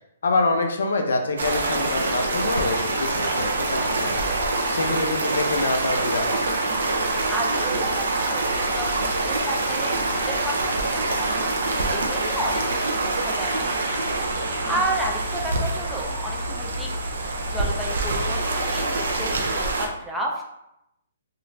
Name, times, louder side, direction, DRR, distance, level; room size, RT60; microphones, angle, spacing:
voice 1, 0.2-4.3 4.7-6.4, left 3 dB, 80° left, 4 dB, 0.6 m, -26 dB
sound 1, 1.4-19.9, right 2 dB, 75° right, 0.5 m, -25 dB
voice 2, 7.0-11.5 11.9-14.0 14.4-17.1 17.5-20.4, right 1 dB, ahead, -3 dB, 0.4 m, -32 dB
2.5 x 2.4 x 3.1 m, 0.84 s
hypercardioid pair, 165°, 0 cm